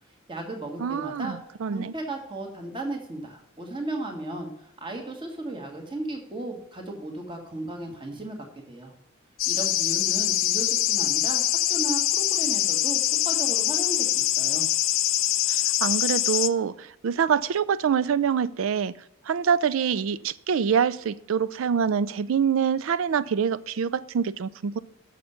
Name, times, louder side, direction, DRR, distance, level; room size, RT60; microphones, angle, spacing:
voice 1, 0.3-1.4 1.7-8.9 9.5-14.6, right 2 dB, 25° right, 1.6 m, -35 dB
voice 2, 0.8-1.9 15.5-18.9 19.3-24.8, right 7 dB, 70° right, 0.4 m, -25 dB
sound 1, 9.4-16.5, left 15 dB, 65° left, 0.4 m, -24 dB
6.6 x 6.5 x 7.0 m
head